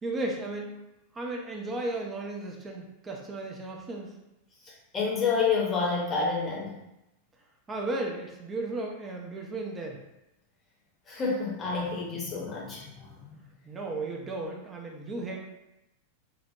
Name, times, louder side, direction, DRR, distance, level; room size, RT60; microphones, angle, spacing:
voice 1, 0.0-0.7 1.1-4.1 7.7-10.0 13.7-15.5, right 2 dB, 20° right, 0 dB, 0.4 m, -35 dB
voice 2, 4.9-6.7 11.1-13.1, left 4 dB, 25° left, -3 dB, 0.8 m, -28 dB
2.9 x 2.1 x 2.7 m, 0.92 s
figure-of-eight pair, 90°, 0 cm